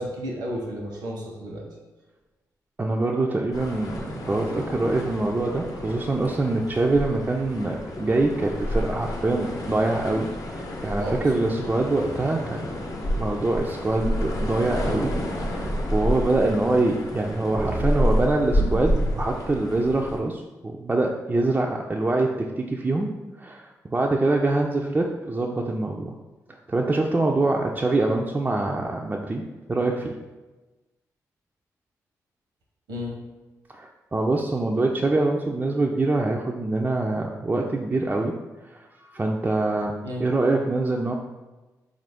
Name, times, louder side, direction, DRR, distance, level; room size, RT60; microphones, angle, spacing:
voice 1, 0.0-1.6 11.0-11.2 11.5-11.6 32.9-33.1 40.0-40.2, equal, 90° right, -2 dB, 0.9 m, -32 dB
voice 2, 2.8-26.2 26.7-30.2 33.7-38.4 38.6-41.1, right 2 dB, 25° right, 0 dB, 0.3 m, -25 dB
sound 1, 3.5-20.2, equal, 55° left, 0.7 m, -29 dB
3.7 x 2.5 x 3.4 m, 1.2 s
supercardioid pair, 50°, 7 cm